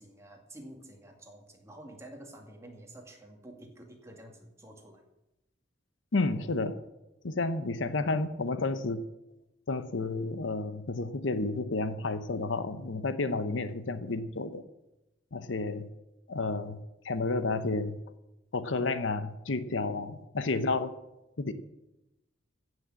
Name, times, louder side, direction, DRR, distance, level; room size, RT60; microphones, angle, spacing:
voice 1, 0.0-5.0, right 1 dB, 15° right, 2 dB, 2.1 m, -49 dB
voice 2, 6.1-6.8 7.2-9.1 9.7-14.6 15.3-15.9 16.3-16.8 17.0-18.0 18.5-20.9 21.4-21.5, left 3 dB, 80° left, 12 dB, 0.8 m, -31 dB
15.0 x 6.4 x 7.6 m, 0.94 s
head